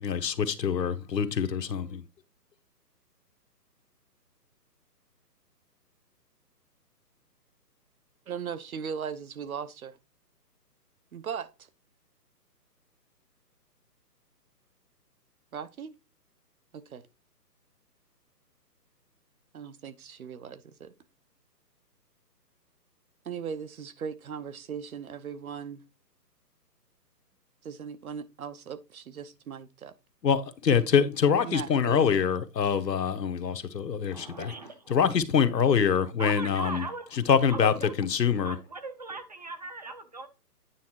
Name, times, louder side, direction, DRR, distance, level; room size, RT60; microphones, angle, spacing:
voice 1, 0.0-1.9 30.2-34.5 34.9-36.8 37.3-38.5, left 7 dB, 80° left, 1.2 m, -25 dB
voice 2, 8.3-10.0 11.1-11.5 15.5-15.9 16.7-17.0 19.5-20.9 23.2-25.8 27.6-29.9 31.4-32.2, right 7 dB, 60° right, 1.0 m, -38 dB
voice 3, 34.1-35.0 36.2-37.1 37.5-37.9 38.4-40.3, right 3 dB, 25° right, 0.6 m, -39 dB
9.3 x 3.5 x 4.6 m
hypercardioid pair, 155°, 49 cm